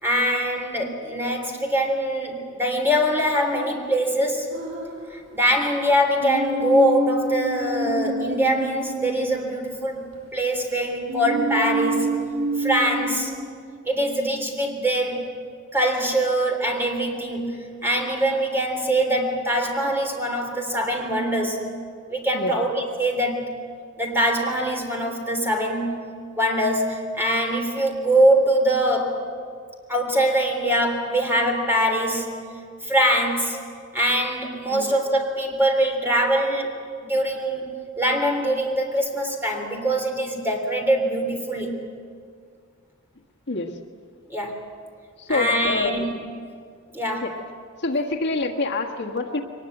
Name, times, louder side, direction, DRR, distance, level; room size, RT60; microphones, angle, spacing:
voice 1, 0.0-4.5 5.1-12.2 12.6-13.3 13.8-15.3 15.7-21.7 22.1-23.5 24.0-26.1 26.4-29.2 29.9-32.4 32.8-33.6 33.9-37.7 38.0-41.9 44.3-44.6 45.3-46.1 46.9-47.3, right 1 dB, 10° right, 2 dB, 3.3 m, -23 dB
sound 1, 4.5-5.6 6.2-10.1 11.1-13.5, right 1 dB, 90° right, 7.7 m, -28 dB
voice 2, 45.2-45.9 47.2-47.3 47.8-49.4, left 3 dB, 55° left, 1 dB, 1.5 m, -26 dB
23.0 x 20.0 x 7.9 m, 2.1 s
head